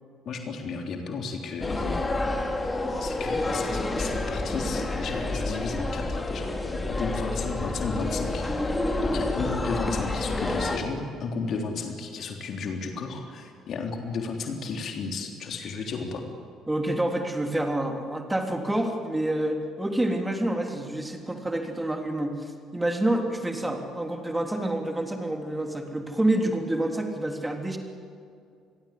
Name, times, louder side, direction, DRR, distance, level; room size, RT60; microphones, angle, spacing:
voice 1, 0.3-2.0 3.0-8.5 9.0-16.2, left 4 dB, 50° left, 3 dB, 3.5 m, -33 dB
sound 1, 1.6-10.8, left 2 dB, 20° left, 3.2 m, -29 dB
voice 2, 16.7-27.8, right 1 dB, 10° right, 4 dB, 3.4 m, -28 dB
27.5 x 22.0 x 8.6 m, 2.4 s
figure-of-eight pair, 50°, 0 cm